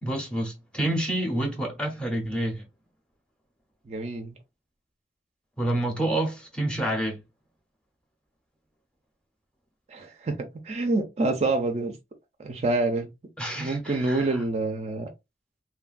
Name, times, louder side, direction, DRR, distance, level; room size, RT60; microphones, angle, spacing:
voice 1, 0.0-2.6 5.6-7.2 13.4-14.4, right 1 dB, 5° left, 0.6 m, -28 dB
voice 2, 3.9-4.4 9.9-11.9 12.4-13.1 13.6-15.1, right 2 dB, 35° right, 0.4 m, -27 dB
3.1 x 2.2 x 2.4 m
head